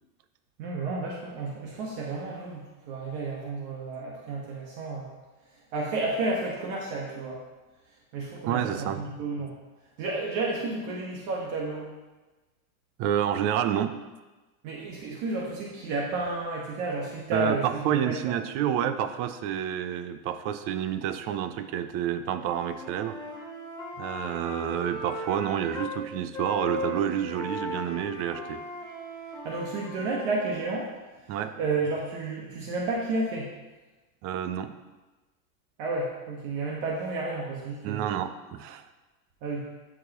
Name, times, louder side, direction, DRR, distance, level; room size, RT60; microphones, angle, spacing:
voice 1, 0.6-5.1 5.7-7.4 8.1-9.6 10.0-11.9 14.6-18.3 29.4-30.9 31.2-33.5 35.8-38.0 39.4-39.6, right 3 dB, 50° right, -2 dB, 1.4 m, -31 dB
voice 2, 8.5-9.0 13.0-13.9 17.3-23.2 24.0-28.6 31.3-31.5 34.2-34.7 37.8-38.8, right 10 dB, 35° right, 10 dB, 0.4 m, -29 dB
Wind instrument woodwind instrument, 22.4-26.0 26.3-30.6, left 1 dB, 10° left, 1.4 m, -37 dB
13.5 x 4.9 x 3.0 m, 1.2 s
supercardioid pair, 130°, 45 cm